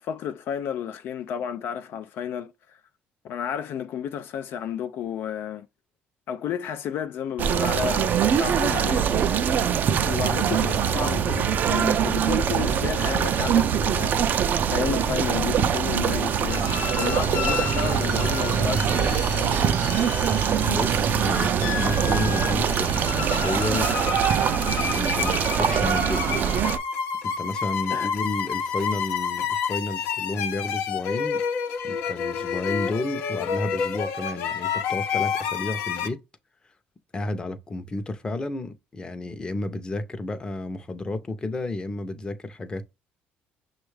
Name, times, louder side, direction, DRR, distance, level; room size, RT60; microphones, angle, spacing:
voice 1, 0.0-2.8 3.2-5.7 6.3-9.1 10.0-14.2 14.6-19.6 19.9-20.0 27.9-28.1, left 8 dB, 65° left, 0.3 m, -32 dB
sound 1, 7.4-26.8, right 8 dB, 50° right, 0.4 m, -23 dB
sound 2, 16.5-36.1, left 7 dB, 80° left, 0.8 m, -30 dB
sound 3, 17.1-24.7, right 4 dB, 70° right, 0.8 m, -34 dB
voice 2, 20.6-23.9 25.0-26.3 27.2-31.4 31.8-36.2 37.1-42.8, left 2 dB, 20° left, 0.6 m, -31 dB
6.1 x 2.3 x 3.2 m
cardioid pair, 120°, 4 cm